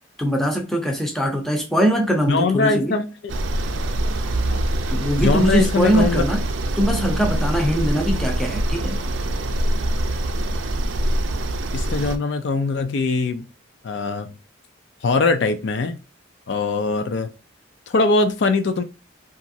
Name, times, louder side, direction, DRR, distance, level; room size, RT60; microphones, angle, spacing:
voice 1, 0.2-2.9 4.9-6.4 6.8-9.0, equal, ahead, 0.5 m, -21 dB
voice 2, 2.3-3.3 4.5-4.6 5.2-6.2 11.7-13.5 13.8-14.4 15.0-16.0 16.5-17.3 17.9-18.8, left 3 dB, 60° left, 0.4 m, -21 dB
sound 1, 3.3-12.2, right 1 dB, 75° right, 0.4 m, -24 dB
2.9 x 2.5 x 2.6 m
head